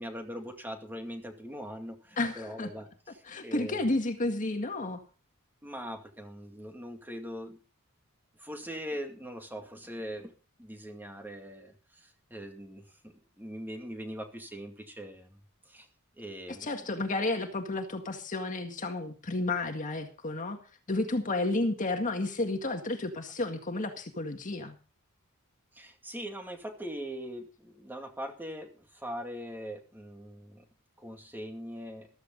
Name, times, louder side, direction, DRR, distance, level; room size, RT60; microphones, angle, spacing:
voice 1, 0.0-2.9 3.1-3.9 4.6-4.8 5.6-7.6 8.4-10.3 10.6-15.4 15.7-15.9 16.2-16.8 25.7-30.6 31.0-32.1, equal, 10° right, 4 dB, 2.3 m, -41 dB
voice 2, 2.2-2.7 3.3-5.0 16.6-20.6 20.9-24.8, left 2 dB, 35° left, 5 dB, 1.9 m, -31 dB
15.0 x 14.0 x 3.9 m, 0.35 s
head